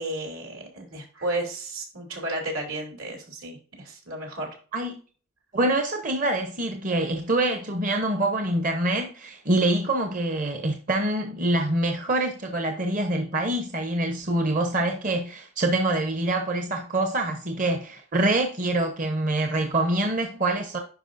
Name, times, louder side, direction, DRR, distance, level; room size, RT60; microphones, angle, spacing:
voice 1, 0.0-4.5, right 1 dB, 75° right, 3.2 m, -33 dB
voice 2, 5.5-20.8, right 1 dB, 40° right, 0.9 m, -25 dB
10.5 x 5.2 x 2.6 m
head